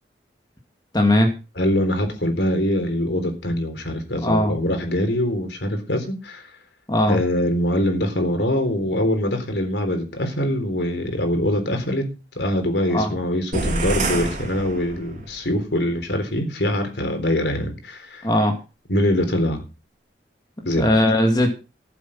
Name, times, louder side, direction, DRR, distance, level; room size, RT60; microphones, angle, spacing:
voice 1, 0.9-1.3 4.2-4.5 6.9-7.2 12.9-13.1 18.2-18.6 20.8-21.5, left 1 dB, 20° left, 3 dB, 2.2 m, -18 dB
voice 2, 1.6-6.5 7.1-18.3 18.9-19.6 20.6-21.0, left 1 dB, 75° left, 6 dB, 3.9 m, -23 dB
sound 1, 13.5-15.4, right 2 dB, 40° right, 3.3 m, -26 dB
14.5 x 7.8 x 6.0 m, 0.31 s
head